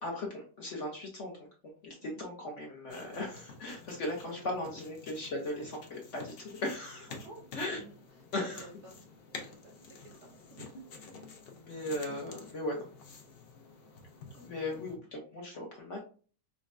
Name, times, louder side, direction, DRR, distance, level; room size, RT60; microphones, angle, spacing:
voice 1, 0.0-1.3 1.8-7.1 7.5-7.8 8.3-8.7 11.5-12.9 14.4-16.0, left 1 dB, 55° left, 0 dB, 0.8 m, -37 dB
sound 1, 2.9-15.0, left 4 dB, 85° left, 0.5 m, -50 dB
voice 2, 4.2-4.9 7.1-8.0 8.4-9.0 9.3-10.8 14.3-15.0, right 2 dB, 55° right, 0 dB, 0.8 m, -53 dB
5.2 x 2.1 x 2.4 m, 0.40 s
omnidirectional pair, 1.9 m